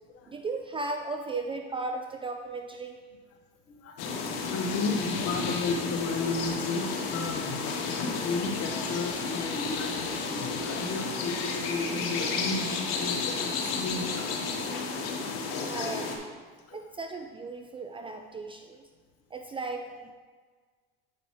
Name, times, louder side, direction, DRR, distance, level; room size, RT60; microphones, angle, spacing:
voice 1, 0.3-3.0 15.4-16.4 16.7-18.9 19.3-20.1, right 3 dB, 20° right, 5 dB, 0.3 m, -36 dB
voice 2, 3.7-7.6 8.0-14.7 15.5-16.0 16.7-16.8, left 3 dB, 50° left, 1 dB, 1.3 m, -34 dB
sound 1, 4.0-16.2, left 4 dB, 70° left, 1.1 m, -32 dB
7.5 x 5.2 x 3.1 m, 1.5 s
supercardioid pair, 100°, 30 cm